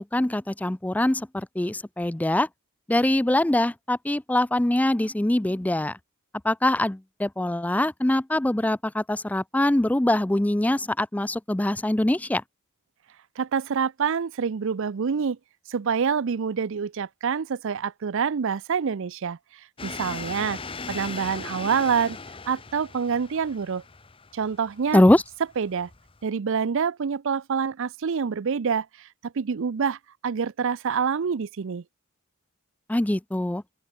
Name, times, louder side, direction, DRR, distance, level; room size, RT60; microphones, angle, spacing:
voice 1, 0.0-2.5 2.9-6.0 6.4-12.4 24.9-25.2 32.9-33.6, left 1 dB, 5° left, 0.4 m, -23 dB
voice 2, 13.4-15.4 15.7-19.4 19.8-20.6 20.9-22.2 22.5-23.8 24.3-25.0 25.6-25.9 26.2-31.8, right 6 dB, 60° right, 0.5 m, -26 dB
sound 1, 19.8-26.2, left 4 dB, 25° left, 1.0 m, -39 dB
open air
head